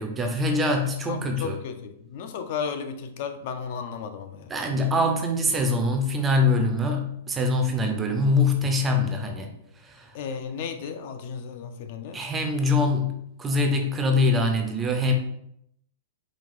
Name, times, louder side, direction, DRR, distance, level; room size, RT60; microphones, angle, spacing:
voice 1, 0.0-1.6 4.5-9.5 9.8-10.1 12.1-13.1 13.4-15.1, left 2 dB, 10° right, 3 dB, 0.5 m, -24 dB
voice 2, 1.1-4.5 10.1-12.2, left 6 dB, 45° left, 8 dB, 0.4 m, -34 dB
4.6 x 2.3 x 3.7 m, 0.72 s
supercardioid pair, 165°, 0 cm